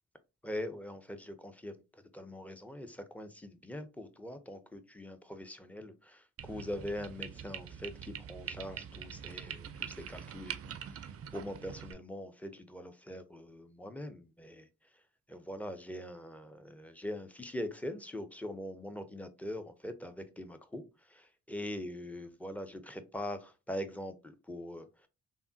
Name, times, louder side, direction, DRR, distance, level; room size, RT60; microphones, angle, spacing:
voice 1, 0.4-14.7 15.3-25.1, left 1 dB, 5° left, 9 dB, 0.6 m, -42 dB
sound 1, 6.4-11.9, right 8 dB, 45° right, 0.4 m, -44 dB
3.4 x 2.1 x 2.6 m, 0.27 s
hypercardioid pair, 50°, 33 cm